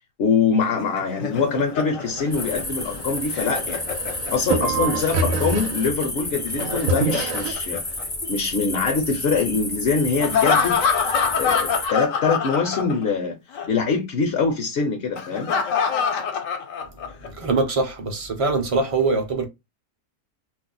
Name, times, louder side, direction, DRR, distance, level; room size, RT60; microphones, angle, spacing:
voice 1, 0.2-3.8 4.3-7.8 8.3-10.8 11.4-13.4 13.7-15.6, left 5 dB, 60° left, 0.8 m, -23 dB
Laughter, 0.6-4.7 6.4-8.5 10.2-13.3 13.5-13.7 15.2-17.3, left 6 dB, 75° left, 1.1 m, -26 dB
sound 1, 2.0-7.5, right 4 dB, 80° right, 1.0 m, -28 dB
sound 2, 2.3-11.9, left 2 dB, 25° left, 0.3 m, -31 dB
voice 2, 17.3-19.5, right 3 dB, 35° right, 0.5 m, -23 dB
2.6 x 2.1 x 3.8 m
omnidirectional pair, 1.4 m